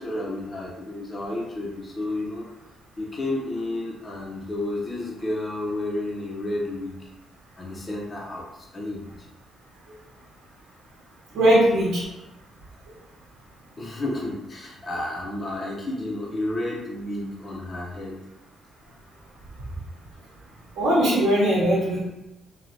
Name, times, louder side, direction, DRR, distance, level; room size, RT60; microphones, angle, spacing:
voice 1, 0.0-2.5 3.0-7.0 7.6-9.2 13.8-18.2, left 1 dB, 30° left, -3 dB, 0.6 m, -31 dB
voice 2, 11.3-12.0 20.8-22.0, right 1 dB, 90° right, -8 dB, 0.9 m, -19 dB
3.1 x 2.2 x 2.6 m, 0.97 s
cardioid pair, 90°, 0 cm